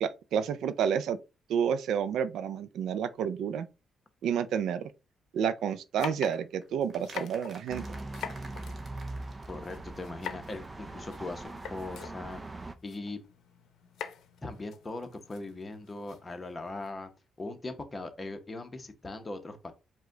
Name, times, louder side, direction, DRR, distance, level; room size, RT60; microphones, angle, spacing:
voice 1, 0.0-1.2 1.5-3.7 4.2-4.8 5.3-7.8, right 8 dB, 75° right, 0.4 m, -30 dB
sound 1, 6.0-16.9, left 8 dB, 75° left, 0.7 m, -46 dB
sound 2, 6.3-10.1 10.3-10.4 10.6-10.7 10.9-11.0, right 2 dB, 40° right, 1.2 m, -52 dB
sound 3, 7.7-12.7, right 2 dB, 20° right, 0.5 m, -41 dB
voice 2, 9.5-12.4 12.8-13.2 14.4-17.1 17.4-19.7, left 2 dB, 25° left, 0.9 m, -40 dB
4.8 x 2.2 x 3.8 m
cardioid pair, 90°, 0 cm